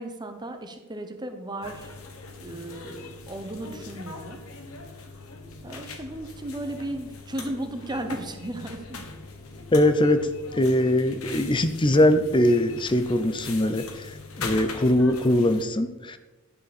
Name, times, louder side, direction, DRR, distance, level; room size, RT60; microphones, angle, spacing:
voice 1, 0.0-1.9 2.4-4.4 5.6-9.0, right 1 dB, 20° right, 6 dB, 1.0 m, -35 dB
sound 1, 1.6-15.6, left 3 dB, 85° left, 1.6 m, -41 dB
voice 2, 9.7-14.1 14.4-16.2, left 1 dB, 25° left, 10 dB, 0.7 m, -22 dB
11.5 x 11.0 x 4.3 m, 1.1 s
head